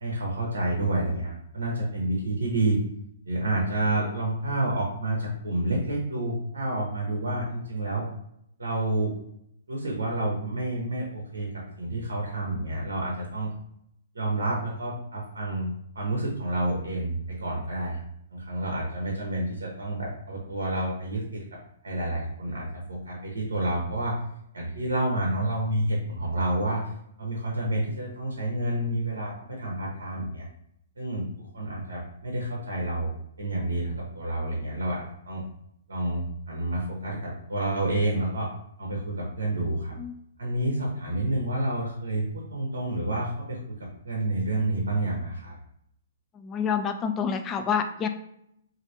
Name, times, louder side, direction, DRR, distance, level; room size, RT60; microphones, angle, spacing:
voice 1, 0.0-2.8 3.3-8.1 8.6-9.1 9.7-13.5 14.1-18.0 18.3-24.2 24.5-26.9 27.2-30.5 31.0-35.5 35.9-38.5 38.8-40.0 40.4-45.5, right 1 dB, 70° right, -1 dB, 0.7 m, -29 dB
voice 2, 46.3-48.1, left 6 dB, 20° left, 8 dB, 0.3 m, -28 dB
3.1 x 2.6 x 2.7 m, 0.75 s
figure-of-eight pair, 120°, 0 cm